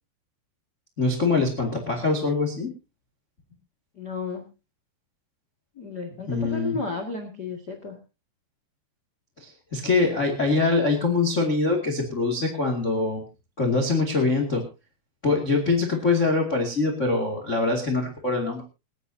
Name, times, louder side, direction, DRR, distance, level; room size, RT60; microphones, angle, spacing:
voice 1, 1.0-2.7 6.3-6.8 9.4-13.2 13.6-14.6 15.2-18.6, left 3 dB, 35° left, 3 dB, 1.1 m, -24 dB
voice 2, 4.0-4.5 5.8-7.9, left 4 dB, 75° left, 4 dB, 0.9 m, -33 dB
27.5 x 10.0 x 2.8 m, 0.30 s
omnidirectional pair, 5.6 m